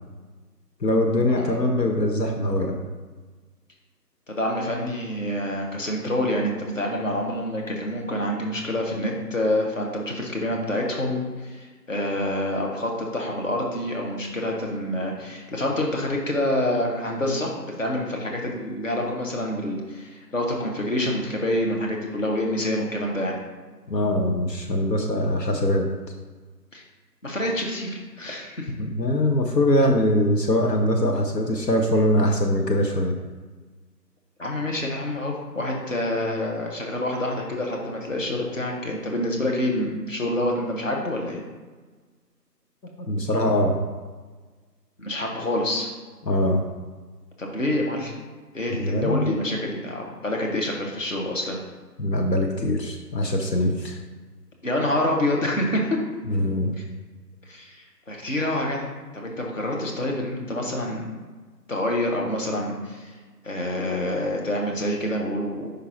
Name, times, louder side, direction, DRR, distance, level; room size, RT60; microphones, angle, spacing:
voice 1, 0.8-2.8 23.9-25.9 28.8-33.2 42.8-43.9 46.2-46.6 48.8-49.4 52.0-54.0 56.3-56.8, left 1 dB, 75° left, 2 dB, 0.9 m, -22 dB
voice 2, 4.3-23.4 26.7-26.8 27.2-28.7 34.4-41.4 45.0-45.9 47.4-48.1 48.5-51.6 54.6-55.8 57.5-58.9 59.1-61.1 61.7-63.1 63.4-65.7, left 1 dB, 50° left, 0 dB, 1.1 m, -27 dB
5.3 x 4.0 x 4.4 m, 1.4 s
figure-of-eight pair, 175°, 50 cm